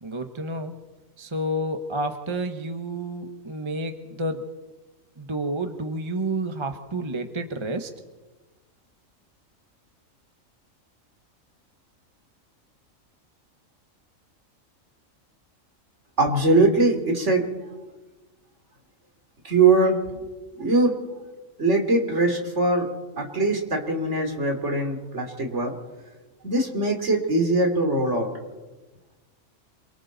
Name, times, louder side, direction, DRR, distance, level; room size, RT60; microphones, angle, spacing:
voice 1, 0.0-0.7 1.2-4.4 5.2-7.9, right 1 dB, 25° right, 6 dB, 1.1 m, -30 dB
voice 2, 16.2-17.4 19.4-20.0 20.6-20.9 21.6-22.9 23.2-25.7 26.4-28.3, right 2 dB, 55° right, 3 dB, 3.3 m, -21 dB
28.0 x 24.0 x 4.0 m, 1.2 s
omnidirectional pair, 1.4 m